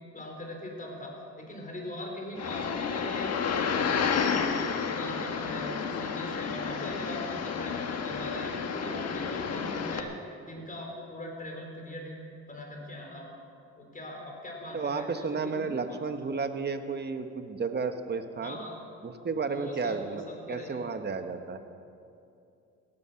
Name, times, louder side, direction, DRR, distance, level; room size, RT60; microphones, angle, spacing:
voice 1, 0.1-3.3 3.6-4.5 4.9-10.1 10.4-12.2 12.5-13.3 13.8-16.0 18.4-18.8 19.5-20.8, left 1 dB, 25° left, 0 dB, 4.6 m, -41 dB
sound 1, 2.4-10.0, left 6 dB, 55° left, 1.4 m, -31 dB
voice 2, 14.7-18.6 19.0-20.2 20.5-21.6, right 4 dB, 35° right, 7 dB, 1.3 m, -32 dB
17.5 x 13.5 x 5.9 m, 2.6 s
cardioid pair, 90°, 30 cm